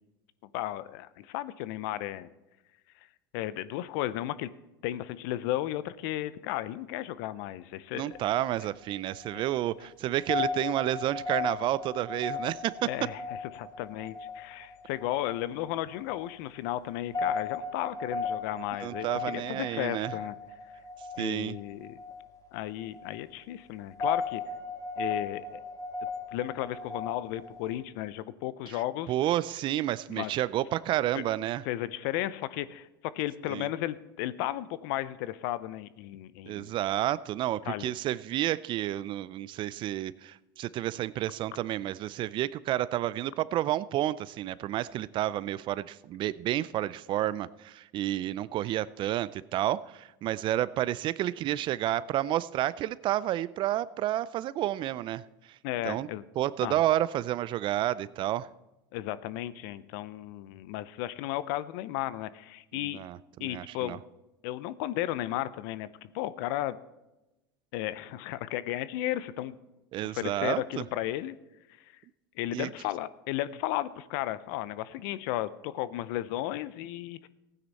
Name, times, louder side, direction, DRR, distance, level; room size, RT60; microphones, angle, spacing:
voice 1, 0.5-2.3 3.3-4.5 4.8-8.1 12.8-20.4 21.2-22.0 22.5-24.4 25.0-25.6 26.3-29.1 30.1-30.3 31.1-31.2 31.6-36.7 37.7-37.9 55.6-56.2 56.6-56.8 58.9-63.0 63.4-64.0 64.4-65.9 66.1-66.8 67.7-69.6 70.0-71.4 72.4-77.3, left 14 dB, 65° left, 16 dB, 0.6 m, -34 dB
voice 2, 7.9-12.7 18.8-20.1 21.2-21.6 29.1-31.6 33.5-33.7 36.5-55.2 55.8-56.1 56.4-58.5 62.8-64.0 69.9-70.8 72.5-72.7, right 13 dB, 45° right, 19 dB, 0.4 m, -30 dB
sound 1, 8.1-27.7, left 4 dB, 30° left, 1.8 m, -37 dB
16.0 x 9.5 x 4.2 m, 0.99 s
hypercardioid pair, 95°, 12 cm